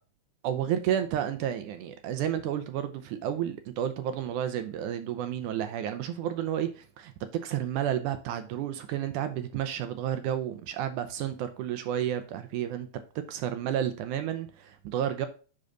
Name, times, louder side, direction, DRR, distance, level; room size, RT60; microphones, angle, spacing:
voice 1, 0.4-7.1 7.4-12.9 13.3-15.3, right 10 dB, 75° right, 2.1 m, -31 dB
10.0 x 4.1 x 3.9 m
omnidirectional pair, 3.9 m